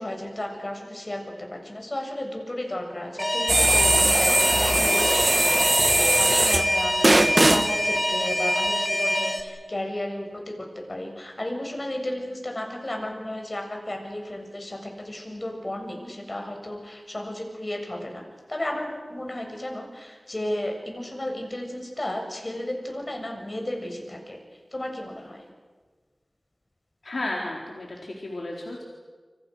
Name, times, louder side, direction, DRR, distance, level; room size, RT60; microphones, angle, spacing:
voice 1, 0.0-5.2 5.9-6.9 7.5-25.4, left 1 dB, 40° left, 2 dB, 7.4 m, -33 dB
Alarm, 3.2-9.4, equal, 10° left, 4.5 m, -25 dB
sound 1, 3.5-6.7 7.0-7.7, right 2 dB, 40° right, 1.8 m, -20 dB
voice 2, 27.0-28.8, left 2 dB, 85° left, -1 dB, 4.2 m, -33 dB
30.0 x 26.5 x 6.6 m, 1.4 s
wide cardioid pair, 45°, 0 cm